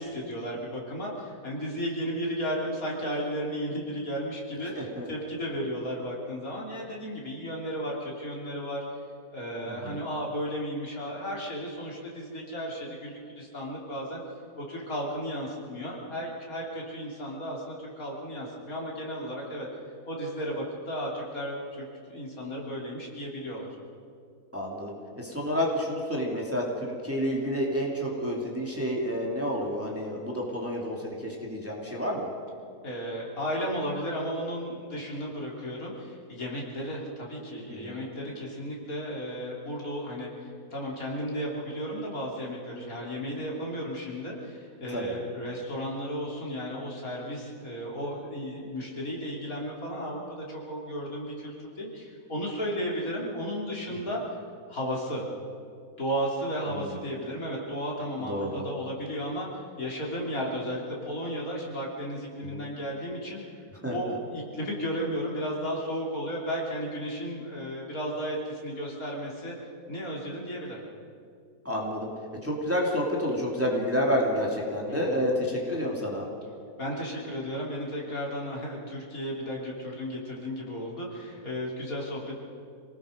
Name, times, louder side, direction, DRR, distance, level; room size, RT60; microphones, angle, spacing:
voice 1, 0.0-8.8 9.3-14.2 14.6-19.7 20.1-23.7 32.8-54.2 54.7-55.3 56.0-63.4 63.9-69.5 69.9-70.8 74.9-75.2 76.8-82.4, equal, 60° left, -3 dB, 3.9 m, -34 dB
voice 2, 4.7-5.1 9.7-10.0 24.5-32.3 37.7-38.0 44.9-45.2 53.9-54.2 56.7-57.0 58.2-58.6 62.5-62.7 63.8-64.2 71.6-72.1 72.4-76.2, equal, 10° right, -3 dB, 3.0 m, -30 dB
27.5 x 19.0 x 5.3 m, 2.4 s
omnidirectional pair, 1.7 m